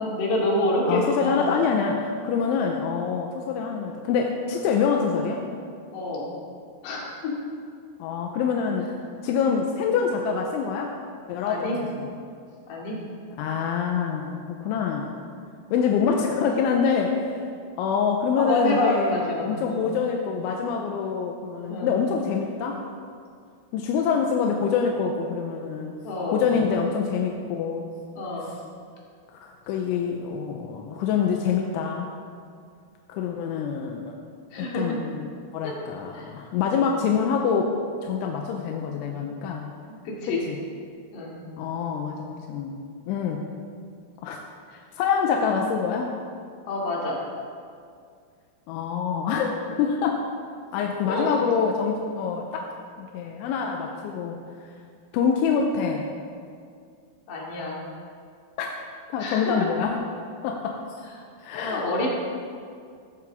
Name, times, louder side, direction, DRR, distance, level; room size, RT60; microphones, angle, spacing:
voice 1, 0.0-1.6 5.9-6.3 6.8-7.3 11.5-11.7 12.7-13.0 16.9-17.0 18.4-19.8 21.7-22.0 26.0-26.4 28.2-28.5 34.5-34.9 36.1-36.3 39.9-40.4 41.1-41.4 46.7-47.2 51.1-51.3 57.3-57.8 59.2-59.7 61.6-62.1, left 2 dB, 60° left, -4 dB, 4.3 m, -27 dB
voice 2, 0.9-5.4 8.0-8.9 9.2-10.9 11.3-12.1 13.4-15.1 15.7-17.2 17.8-22.8 23.7-26.0 26.3-27.9 28.4-28.5 29.3-32.1 33.1-34.1 34.6-35.3 35.5-37.7 38.0-39.7 40.3-40.6 41.6-42.8 43.1-43.4 44.2-44.4 44.7-46.1 48.7-50.2 50.7-52.7 53.0-54.4 55.1-56.1 58.6-58.7 59.1-60.1 60.4-60.8 61.4-61.9, left 6 dB, 80° left, 1 dB, 3.0 m, -26 dB
14.5 x 14.5 x 3.6 m, 2.2 s
omnidirectional pair, 5.8 m